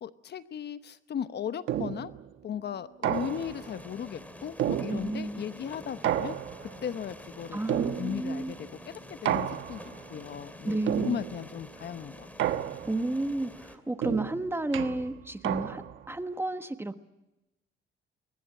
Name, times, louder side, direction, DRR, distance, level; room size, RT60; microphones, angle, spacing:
voice 1, 0.0-2.1 2.4-6.4 6.6-12.3, left 8 dB, 55° left, 12 dB, 0.9 m, -37 dB
sound 1, 1.7-2.2 3.0-3.7 4.6-5.4 6.0-6.8 7.7-8.4 9.3-10.0 10.9-11.5 12.4-13.1 14.0-16.1, right 11 dB, 80° right, 1.2 m, -31 dB
sound 2, 3.1-13.8, left 1 dB, 5° left, 2.6 m, -48 dB
voice 2, 4.9-5.4 7.5-8.5 10.6-11.2 12.9-17.0, right 2 dB, 10° right, 10 dB, 1.2 m, -32 dB
23.0 x 20.0 x 8.8 m, 1.0 s
cardioid pair, 90°, 20 cm